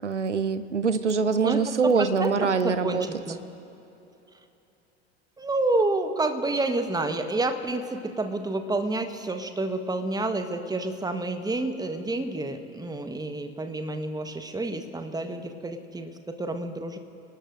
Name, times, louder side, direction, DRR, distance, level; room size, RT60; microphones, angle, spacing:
voice 1, 0.0-3.1, right 5 dB, 90° right, 13 dB, 0.8 m, -24 dB
voice 2, 1.4-3.4 5.4-17.0, right 2 dB, 10° right, 7 dB, 1.3 m, -29 dB
29.0 x 19.0 x 2.6 m, 3.0 s
figure-of-eight pair, 75°, 34 cm